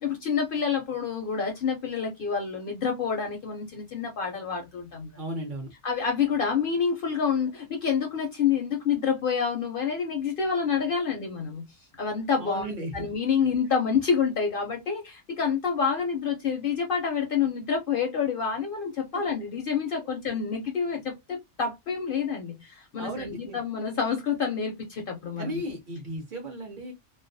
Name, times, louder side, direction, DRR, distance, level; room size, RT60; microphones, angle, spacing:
voice 1, 0.0-5.1 5.8-11.6 12.0-12.7 12.9-25.6, left 6 dB, 60° left, 0.6 m, -28 dB
voice 2, 5.2-5.7 12.4-13.1 19.1-19.2 19.9-20.1 23.0-23.6 25.4-26.9, right 1 dB, 55° right, 0.6 m, -36 dB
2.3 x 2.1 x 2.5 m
omnidirectional pair, 1.3 m